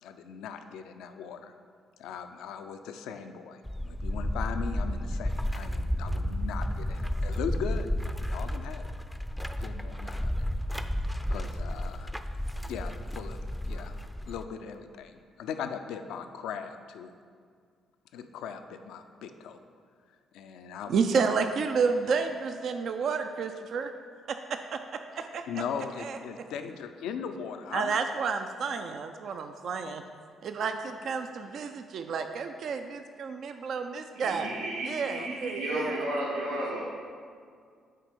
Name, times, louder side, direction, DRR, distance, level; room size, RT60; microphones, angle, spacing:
voice 1, 0.0-1.5 2.0-7.9 8.2-8.9 9.6-10.4 11.3-12.1 12.7-13.9 14.3-17.1 18.1-19.6 20.3-21.3 22.1-22.2 25.5-28.0 29.8-29.9 30.6-30.9 31.5-31.6 35.2-35.3 36.5-36.6, left 7 dB, 70° left, 8 dB, 0.4 m, -39 dB
sound 1, 3.7-14.5, left 1 dB, ahead, 0.4 m, -32 dB
voice 2, 20.9-23.9 24.3-25.4 26.0-26.2 27.7-30.0 30.4-34.5 34.8-36.1, right 5 dB, 60° right, 6 dB, 0.3 m, -31 dB
voice 3, 34.1-36.8, right 1 dB, 80° right, -5 dB, 1.3 m, -33 dB
7.4 x 4.4 x 5.2 m, 2.1 s
hypercardioid pair, 45°, 0 cm